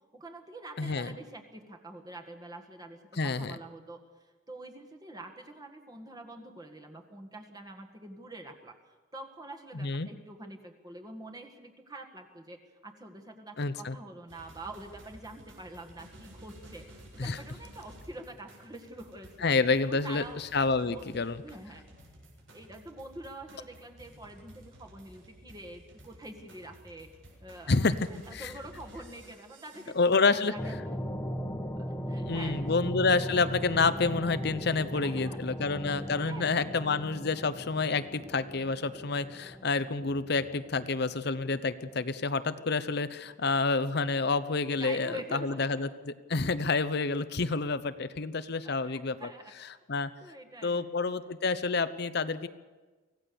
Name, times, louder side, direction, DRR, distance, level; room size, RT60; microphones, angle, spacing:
voice 1, 0.1-8.7 9.1-19.5 19.8-20.4 20.7-21.8 22.5-27.1 27.4-31.1 31.8-32.7 34.7-35.6 36.2-36.6 44.8-45.8 48.6-49.5 50.0-50.8, right 2 dB, 20° right, 3 dB, 1.9 m, -46 dB
voice 2, 0.8-1.1 3.2-3.6 9.7-10.1 13.6-14.0 17.2-17.4 19.4-21.4 27.7-28.1 28.3-28.5 29.9-30.5 32.3-49.3 49.9-50.1 50.6-52.5, left 4 dB, 55° left, 14 dB, 0.8 m, -28 dB
sound 1, 14.3-30.2, right 1 dB, 75° right, 7.4 m, -53 dB
sound 2, 30.6-42.4, equal, 10° left, 1.3 m, -39 dB
24.5 x 16.5 x 7.0 m, 1.3 s
head